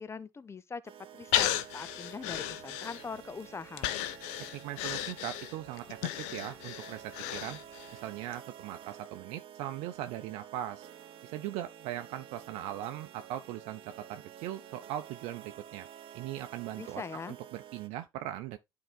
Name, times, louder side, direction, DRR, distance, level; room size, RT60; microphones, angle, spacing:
voice 1, 0.0-4.0 16.8-17.3, left 5 dB, 25° left, 0.7 m, -42 dB
sound 1, 0.8-17.9, right 9 dB, 50° right, 0.9 m, -50 dB
Breathing, 1.3-3.3 3.8-8.0 8.3-8.4, left 13 dB, 75° left, 0.7 m, -34 dB
voice 2, 4.5-7.6 7.9-10.9 11.2-15.9 16.1-18.6, right 13 dB, 70° right, 0.6 m, -40 dB
11.0 x 4.7 x 2.3 m
hypercardioid pair, 65°, 11 cm